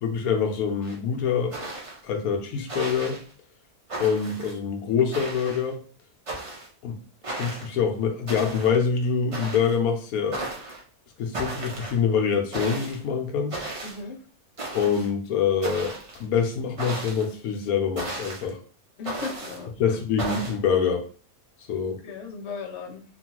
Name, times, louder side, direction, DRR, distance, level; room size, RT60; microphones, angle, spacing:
voice 1, 0.0-1.6 2.0-3.2 4.0-5.8 6.8-7.0 7.3-10.4 11.2-13.6 14.7-18.6 19.8-21.1 21.7-22.0, left 6 dB, 80° left, 4 dB, 1.0 m, -25 dB
sound 1, 0.8-0.9 1.5-2.0 2.7-3.2 3.9-4.5 5.1-5.7 6.3-6.7 7.2-7.7 8.3-8.8 9.3-9.7 10.3-10.8 11.3-12.0 12.5-13.0 13.5-14.0 14.6-15.1 15.6-16.2 16.8-17.3 18.0-18.5 19.0-19.6 20.2-20.5, right 2 dB, 40° right, 0.5 m, -35 dB
voice 2, 13.8-14.2 19.0-20.0 22.0-23.0, left 5 dB, 60° left, 1 dB, 0.8 m, -36 dB
3.0 x 2.2 x 2.9 m, 0.40 s
omnidirectional pair, 1.5 m